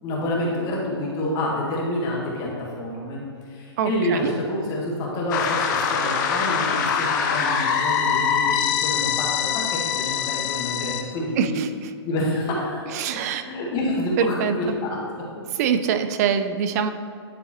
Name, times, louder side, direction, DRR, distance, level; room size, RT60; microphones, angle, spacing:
voice 1, 0.0-11.6 12.0-12.8 13.3-15.2, left 1 dB, 25° left, -3 dB, 1.4 m, -28 dB
voice 2, 3.8-4.3 11.4-11.7 12.9-13.4 14.2-14.6 15.6-16.9, right 8 dB, 35° right, 10 dB, 0.4 m, -23 dB
sound 1, 5.3-11.0, left 7 dB, 45° left, 0.6 m, -24 dB
10.0 x 3.7 x 3.0 m, 2.2 s
hypercardioid pair, 140°, 14 cm